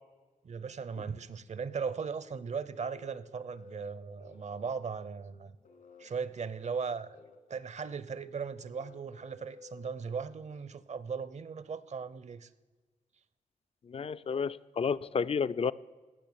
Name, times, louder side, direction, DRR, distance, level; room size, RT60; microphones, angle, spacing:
voice 1, 0.4-5.6 6.0-7.2 7.5-12.5, right 5 dB, 55° right, 16 dB, 0.7 m, -38 dB
sound 1, 2.3-11.0, left 3 dB, 70° left, 1.7 m, -56 dB
voice 2, 13.9-15.7, left 6 dB, 45° left, 17 dB, 0.4 m, -31 dB
17.0 x 6.4 x 8.8 m, 1.3 s
wide cardioid pair, 110°, 14 cm